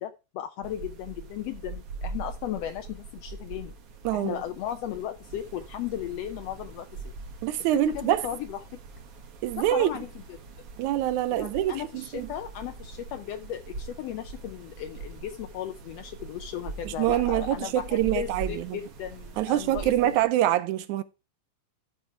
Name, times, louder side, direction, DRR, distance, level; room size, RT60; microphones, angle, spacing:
voice 1, 0.0-3.7 4.1-7.1 7.7-8.6 9.6-10.4 11.3-20.1, left 11 dB, 80° left, 1.4 m, -36 dB
sound 1, 0.6-20.2, right 4 dB, 55° right, 1.9 m, -42 dB
voice 2, 4.1-4.4 7.4-8.2 9.4-9.9 10.8-12.3 16.9-18.8 19.4-21.0, right 13 dB, 75° right, 2.0 m, -25 dB
12.5 x 4.8 x 4.5 m
omnidirectional pair, 3.6 m